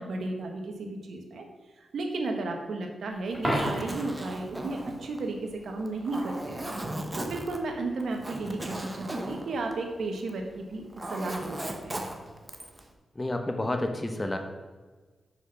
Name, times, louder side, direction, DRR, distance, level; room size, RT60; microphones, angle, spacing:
voice 1, 0.0-1.4 1.8-5.4 5.6-6.6 7.2-10.8 11.1-11.6 11.8-12.0, right 2 dB, 75° right, 3 dB, 1.2 m, -33 dB
Coin (dropping), 3.3-4.2 10.3-10.5, equal, ahead, 2.5 m, -30 dB
Zipper (clothing), 3.3-10.4 10.7-12.8, right 1 dB, 20° right, 1.0 m, -37 dB
voice 2, 13.2-14.4, left 1 dB, 20° left, 6 dB, 0.9 m, -30 dB
6.2 x 5.6 x 6.1 m, 1.4 s
cardioid pair, 90°, 0 cm